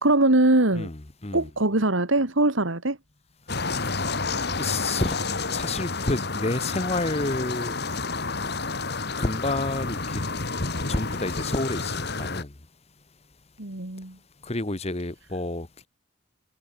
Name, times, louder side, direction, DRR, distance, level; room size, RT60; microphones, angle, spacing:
voice 1, 0.0-0.9 1.3-3.0 13.6-14.2, right 2 dB, 70° right, 2.3 m, -22 dB
voice 2, 0.7-1.5 4.5-5.2 5.5-7.8 9.2-10.2 10.9-12.6 14.4-15.9, left 2 dB, 30° left, 1.3 m, -29 dB
sound 1, 3.5-12.4, left 3 dB, 55° left, 2.7 m, -30 dB
head